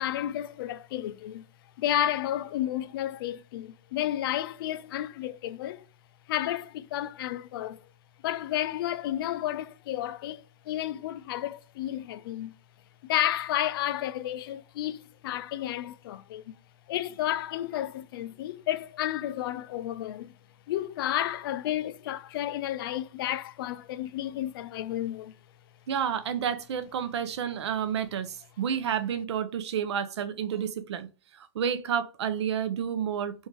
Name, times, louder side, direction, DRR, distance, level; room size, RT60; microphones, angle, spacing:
voice 1, 0.0-1.4 1.8-5.9 6.3-7.8 8.2-12.5 13.0-16.4 16.9-20.3 20.7-25.3, left 12 dB, 60° left, 0.4 m, -31 dB
voice 2, 25.9-31.1 31.4-33.5, right 8 dB, 90° right, 0.6 m, -30 dB
3.6 x 2.6 x 4.6 m
supercardioid pair, 155°, 14 cm